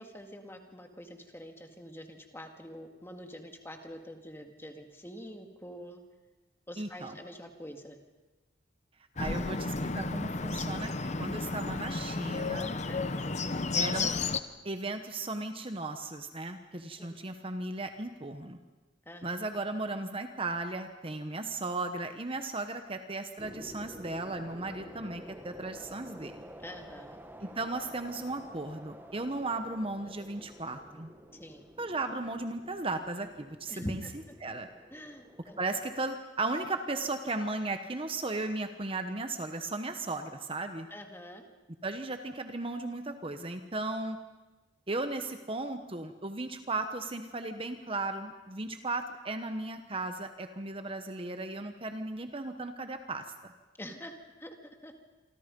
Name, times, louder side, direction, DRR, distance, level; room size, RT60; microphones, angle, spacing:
voice 1, 0.0-6.0 6.7-8.0 12.9-13.4 17.0-17.1 19.1-19.4 26.6-27.2 31.3-31.7 33.7-34.1 34.9-35.6 40.9-41.5 53.8-54.1 54.4-54.5 54.8-55.0, equal, 15° left, 4 dB, 2.0 m, -45 dB
voice 2, 6.8-7.2 9.2-10.9 11.2-12.7 13.8-14.1 14.6-18.6 19.2-26.4 27.4-31.1 31.8-34.0 34.4-34.7 35.6-40.9 41.8-44.2 44.9-53.2, right 2 dB, 30° right, 7 dB, 1.1 m, -36 dB
Bird, 9.2-14.4, left 3 dB, 35° left, 0.9 m, -32 dB
sound 1, 23.4-36.1, equal, 10° right, 1.3 m, -50 dB
27.5 x 25.0 x 5.4 m, 1.2 s
head